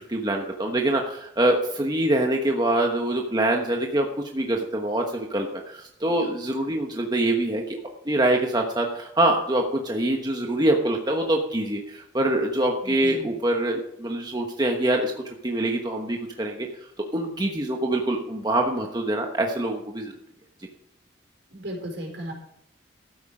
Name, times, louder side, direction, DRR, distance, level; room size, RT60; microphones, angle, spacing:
voice 1, 0.1-7.8 8.1-15.1 15.4-16.7 17.1-20.1, right 1 dB, 20° right, 2 dB, 1.1 m, -24 dB
voice 2, 12.8-13.3 21.5-22.3, right 1 dB, 70° right, 2 dB, 4.5 m, -35 dB
13.0 x 9.5 x 5.0 m, 0.78 s
head